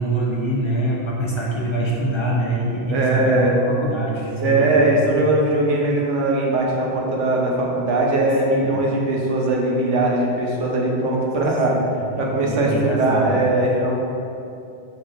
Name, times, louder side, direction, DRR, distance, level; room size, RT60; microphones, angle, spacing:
voice 1, 0.0-5.3 8.6-8.8 11.9-13.4, right 1 dB, 45° left, -3 dB, 0.3 m, -25 dB
voice 2, 2.9-3.5 4.4-11.8 12.2-13.9, right 2 dB, 85° right, -2 dB, 1.0 m, -20 dB
5.0 x 3.8 x 2.4 m, 2.6 s
omnidirectional pair, 1.2 m